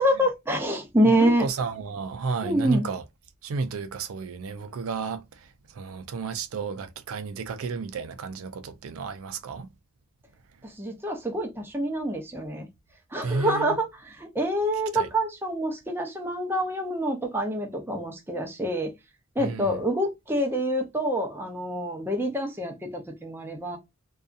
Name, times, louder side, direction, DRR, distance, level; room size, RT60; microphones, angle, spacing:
voice 1, 0.0-1.5 2.4-2.8 10.6-12.7 13.1-18.9 19.4-23.8, right 1 dB, 10° right, 0.5 m, -26 dB
voice 2, 1.2-3.0 3.4-5.2 5.8-9.7 13.2-13.8 14.9-15.1 19.4-19.8, right 4 dB, 90° right, 0.4 m, -32 dB
2.7 x 2.3 x 2.3 m
head